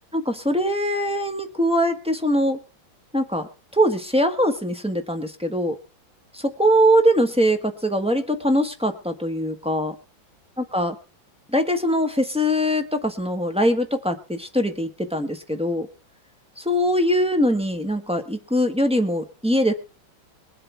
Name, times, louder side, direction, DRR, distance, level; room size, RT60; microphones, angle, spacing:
voice 1, 0.1-2.6 3.1-5.8 6.3-9.9 10.7-11.0 11.5-15.9 16.6-19.7, equal, 5° right, 6 dB, 1.0 m, -22 dB
22.0 x 7.6 x 4.6 m, 0.33 s
omnidirectional pair, 2.1 m